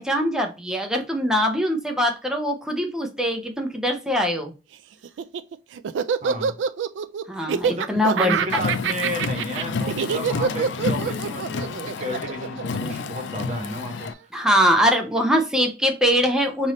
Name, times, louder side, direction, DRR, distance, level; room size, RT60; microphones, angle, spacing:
voice 1, 0.0-4.5 7.3-8.4 14.3-16.7, equal, 5° right, 3 dB, 0.7 m, -22 dB
Laughter, 5.0-13.5, right 6 dB, 85° right, 0.3 m, -25 dB
voice 2, 6.2-6.5 7.7-14.1, equal, 40° right, 2 dB, 1.1 m, -32 dB
Car, 8.5-14.1, left 4 dB, 75° left, 0.4 m, -30 dB
3.4 x 2.6 x 3.8 m, 0.30 s
head